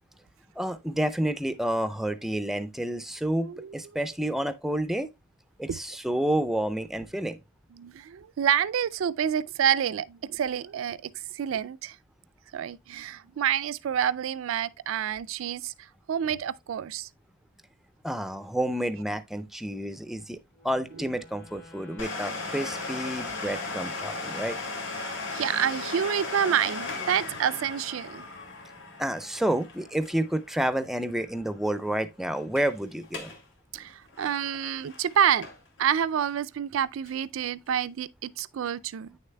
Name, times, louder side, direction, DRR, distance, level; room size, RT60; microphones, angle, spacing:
voice 1, 0.6-5.1 5.6-7.4 18.0-20.4 20.6-24.6 29.0-33.3, right 1 dB, ahead, 0.4 m, -29 dB
voice 2, 3.4-3.7 7.8-11.0 11.3-12.0 12.5-17.1 21.0-21.1 25.0-28.2 33.7-35.5 35.8-39.2, right 9 dB, 80° right, 0.4 m, -28 dB
Wind instrument woodwind instrument, 20.5-24.1, left 3 dB, 50° left, 2.9 m, -51 dB
Domestic sounds home sounds, 22.0-31.4 31.7-31.8 32.4-32.7 33.0-33.4 33.7-35.8 36.3-36.4 37.1-37.2, left 3 dB, 65° left, 2.2 m, -37 dB
9.1 x 6.5 x 2.2 m
head